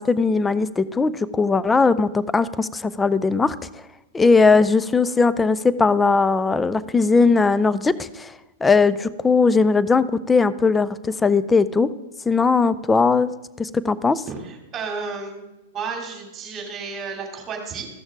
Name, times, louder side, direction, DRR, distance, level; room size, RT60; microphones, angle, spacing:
voice 1, 0.0-3.6 4.1-8.3 8.6-11.9 12.3-13.3 13.6-14.2, left 4 dB, 15° left, 16 dB, 0.4 m, -19 dB
voice 2, 14.3-17.9, right 5 dB, 25° right, 1 dB, 2.8 m, -32 dB
15.0 x 6.2 x 3.6 m, 0.98 s
hypercardioid pair, 110°, 0 cm